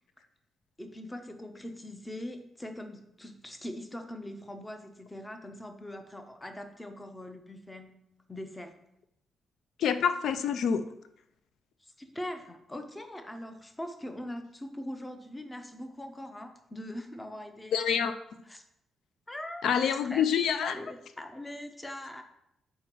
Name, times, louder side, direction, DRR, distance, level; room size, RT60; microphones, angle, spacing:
voice 1, 0.8-8.0 8.3-8.7 11.8-18.0 18.5-18.6 19.3-19.7 20.0-20.3 20.6-22.2, left 1 dB, 10° left, 6 dB, 0.6 m, -42 dB
voice 2, 9.8-10.9 17.7-18.1 19.6-20.8, left 7 dB, 70° left, 10 dB, 0.3 m, -26 dB
5.6 x 4.4 x 4.5 m, 0.80 s
cardioid pair, 150°, 0 cm